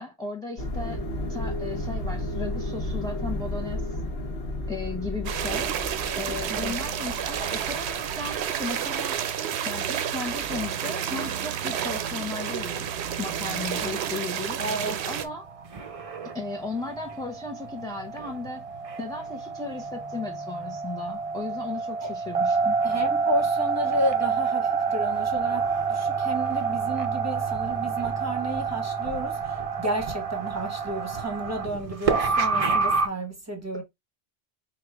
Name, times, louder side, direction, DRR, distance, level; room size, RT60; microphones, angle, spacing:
voice 1, 0.0-3.9 4.7-5.7 6.1-9.2 9.7-12.9 13.2-14.6 15.1-15.5 16.3-18.6 19.0-22.8, left 3 dB, 5° left, 0.5 m, -35 dB
sound 1, 0.6-9.2, left 1 dB, 70° left, 1.1 m, -33 dB
sound 2, 5.3-15.3, right 9 dB, 85° right, 0.9 m, -30 dB
voice 2, 14.6-15.2 22.0-22.1 22.8-33.8, right 1 dB, 15° right, 1.0 m, -32 dB
sound 3, 15.1-33.1, right 5 dB, 45° right, 0.5 m, -28 dB
4.6 x 2.4 x 3.3 m
omnidirectional pair, 1.1 m